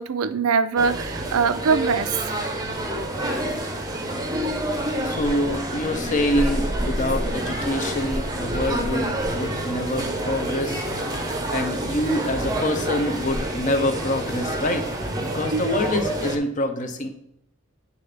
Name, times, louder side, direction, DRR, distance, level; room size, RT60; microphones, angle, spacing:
voice 1, 0.0-2.3 15.5-15.8, right 5 dB, 80° right, 12 dB, 0.5 m, -23 dB
sound 1, 0.8-16.4, right 1 dB, 15° right, 0.7 m, -28 dB
voice 2, 5.0-10.8 11.5-14.9 15.2-17.1, left 1 dB, 35° left, 7 dB, 0.7 m, -26 dB
8.3 x 3.8 x 3.3 m, 0.77 s
head